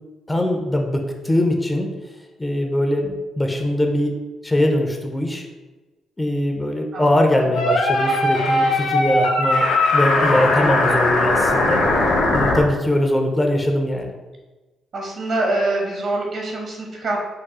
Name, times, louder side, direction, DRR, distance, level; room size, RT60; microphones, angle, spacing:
voice 1, 0.3-1.9 2.4-5.5 6.2-9.6 9.9-11.8 12.3-14.1, left 1 dB, 15° left, 2 dB, 0.6 m, -21 dB
voice 2, 6.9-7.5 14.9-17.2, right 2 dB, 55° right, 0 dB, 1.3 m, -25 dB
sound 1, 7.6-12.6, left 2 dB, 85° left, 1.0 m, -19 dB
4.8 x 2.2 x 4.8 m, 1.2 s
cardioid pair, 90°, 0 cm